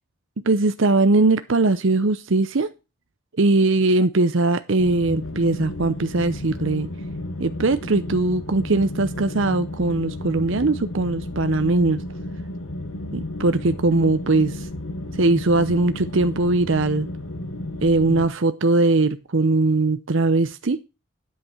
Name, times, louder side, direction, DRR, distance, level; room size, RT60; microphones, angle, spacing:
voice 1, 0.4-2.7 3.4-6.9 7.4-12.0 13.1-14.7 15.2-17.1 17.8-20.8, right 2 dB, 60° right, 11 dB, 0.7 m, -20 dB
sound 1, 4.8-18.3, left 1 dB, 70° left, 1.6 m, -33 dB
9.8 x 8.3 x 4.5 m, 0.28 s
head